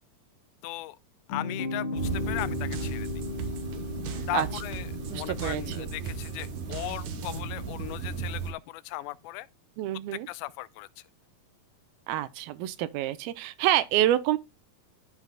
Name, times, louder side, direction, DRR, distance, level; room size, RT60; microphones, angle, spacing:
voice 1, 0.6-1.0 1.3-3.1 4.3-9.5 10.1-11.0, left 17 dB, 85° left, 2.4 m, -37 dB
sound 1, 1.3-6.8, left 3 dB, 65° left, 1.3 m, -36 dB
sound 2, 2.0-8.5, right 4 dB, 55° right, 2.7 m, -36 dB
sound 3, 2.1-7.4, right 8 dB, 75° right, 2.8 m, -40 dB
voice 2, 4.1-4.5 5.1-5.9 9.8-10.3 12.1-14.4, right 13 dB, 90° right, 2.5 m, -28 dB
13.5 x 5.4 x 2.3 m
omnidirectional pair, 4.3 m